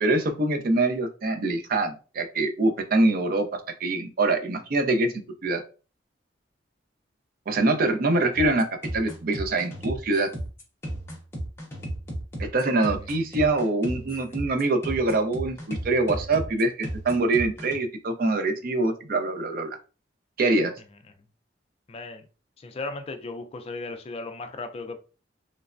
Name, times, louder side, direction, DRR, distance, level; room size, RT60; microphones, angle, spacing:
voice 1, 0.0-5.1 5.4-5.6 7.5-8.7 8.9-10.3 12.4-19.8 20.4-20.7, right 2 dB, 50° right, 0.5 m, -24 dB
sound 1, 8.3-17.8, right 1 dB, 15° left, 0.7 m, -34 dB
voice 2, 21.9-22.2 22.6-25.0, left 3 dB, 35° left, 0.3 m, -36 dB
3.2 x 2.1 x 2.4 m
head